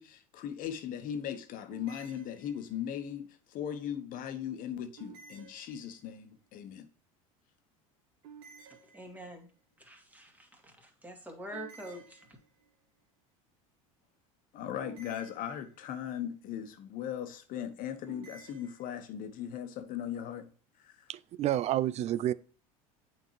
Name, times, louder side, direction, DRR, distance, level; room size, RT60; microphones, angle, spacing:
voice 1, 0.0-6.9 14.5-20.5 20.8-21.1, left 9 dB, 50° left, 1.2 m, -38 dB
sound 1, 1.7-3.0 5.0-6.3 8.2-9.5 11.5-12.8 14.8-16.1 18.1-19.0, right 6 dB, 65° right, 1.8 m, -54 dB
voice 2, 8.9-9.5 9.8-12.3, right 1 dB, 10° right, 2.1 m, -46 dB
voice 3, 21.1-22.3, right 12 dB, 40° right, 0.4 m, -29 dB
8.6 x 4.5 x 3.1 m
hypercardioid pair, 85°, 18 cm